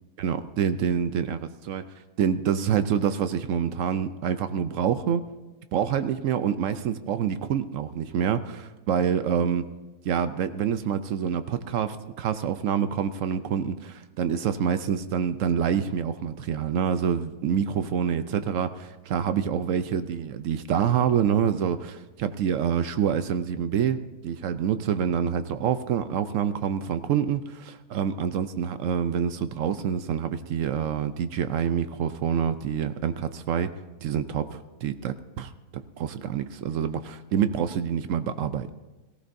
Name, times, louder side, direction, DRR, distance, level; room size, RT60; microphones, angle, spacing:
voice 1, 0.2-1.9 2.2-5.2 5.7-9.6 10.0-33.7 34.0-35.5 36.0-38.7, right 8 dB, 70° right, 11 dB, 0.8 m, -27 dB
18.0 x 15.0 x 2.6 m, 1.2 s
omnidirectional pair, 1.7 m